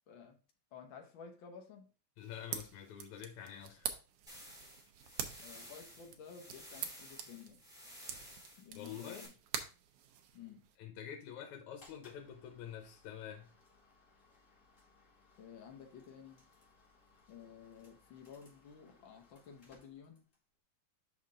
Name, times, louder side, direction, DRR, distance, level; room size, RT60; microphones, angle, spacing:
voice 1, 0.1-0.4 0.7-1.9 5.4-7.6 8.6-9.3 10.3-10.6 15.4-16.4 17.3-20.2, left 7 dB, 60° left, 1.3 m, -53 dB
voice 2, 2.2-3.9 8.8-9.3 10.8-13.6, left 9 dB, 80° left, 2.3 m, -47 dB
sound 1, 2.2-10.8, right 9 dB, 90° right, 2.2 m, -46 dB
sound 2, 4.3-9.3, equal, ahead, 2.9 m, -54 dB
sound 3, 11.7-20.5, left 3 dB, 30° left, 2.1 m, -66 dB
5.8 x 5.5 x 3.6 m
omnidirectional pair, 3.3 m